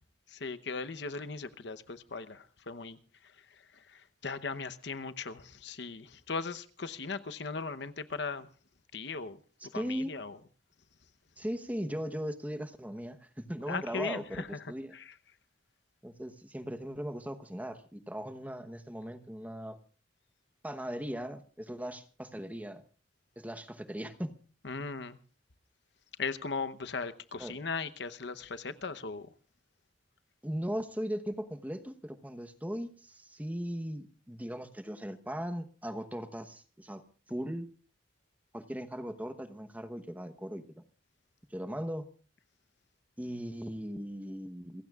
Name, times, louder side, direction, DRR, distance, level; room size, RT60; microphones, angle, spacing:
voice 1, 0.3-8.5 8.9-10.4 13.7-15.1 24.6-25.2 26.2-29.3, left 4 dB, 60° left, 11 dB, 0.9 m, -38 dB
voice 2, 9.7-10.1 11.4-14.9 16.0-19.8 20.6-22.8 23.4-24.3 27.4-27.6 30.4-37.0 37.3-37.7 38.5-40.6 41.5-42.1 43.2-44.8, equal, 10° right, 9 dB, 1.0 m, -38 dB
28.0 x 16.0 x 2.4 m, 0.38 s
head